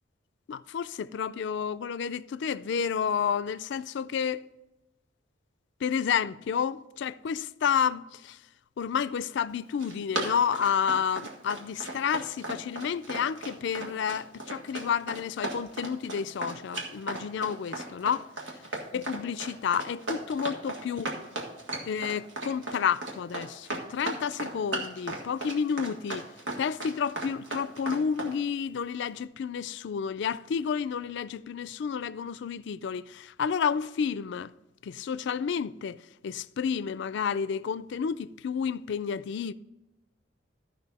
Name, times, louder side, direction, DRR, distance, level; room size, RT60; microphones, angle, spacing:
voice 1, 0.5-4.4 5.8-8.4 8.8-18.3 18.9-21.1 21.8-26.2 26.6-34.5 34.8-36.0 36.2-39.5, left 7 dB, 65° left, 0.4 m, -30 dB
Run, 9.6-28.3, right 2 dB, 80° right, 1.7 m, -36 dB
13.5 x 5.6 x 4.1 m
head